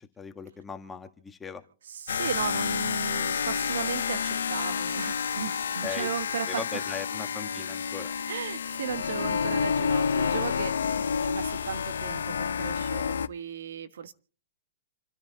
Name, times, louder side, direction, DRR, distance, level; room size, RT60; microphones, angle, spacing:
voice 1, 0.0-1.6 5.8-6.1 6.5-8.1, left 5 dB, 10° left, 6 dB, 1.5 m, -39 dB
voice 2, 1.9-6.6 8.3-14.1, right 7 dB, 75° right, 11 dB, 1.4 m, -36 dB
sound 1, 2.1-13.3, left 6 dB, 85° left, 0.8 m, -29 dB
28.5 x 10.5 x 4.1 m, 0.40 s
hypercardioid pair, 140°, 0 cm